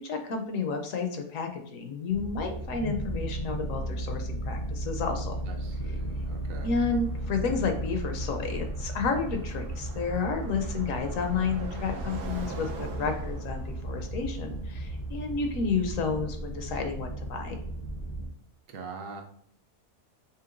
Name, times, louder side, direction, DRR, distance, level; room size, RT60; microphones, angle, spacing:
voice 1, 0.0-5.4 6.6-17.6, left 5 dB, 70° left, 5 dB, 0.9 m, -31 dB
sound 1, 2.1-18.3, right 1 dB, 50° left, 0.4 m, -35 dB
Car passing by, 5.2-17.0, right 3 dB, 90° right, 1.3 m, -47 dB
voice 2, 5.5-6.7 18.7-19.2, right 4 dB, 70° right, 3 dB, 0.9 m, -42 dB
5.6 x 3.1 x 2.5 m, 0.64 s
omnidirectional pair, 1.6 m